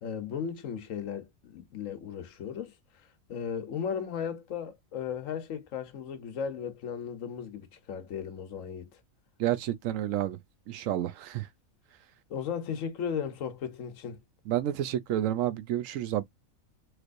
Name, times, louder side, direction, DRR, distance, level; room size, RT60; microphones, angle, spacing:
voice 1, 0.0-2.7 3.3-8.9 12.3-14.2, left 7 dB, 70° left, 1.2 m, -36 dB
voice 2, 9.4-10.4 10.7-11.5 14.5-16.2, right 12 dB, 70° right, 0.9 m, -30 dB
3.2 x 3.1 x 2.4 m
omnidirectional pair, 1.5 m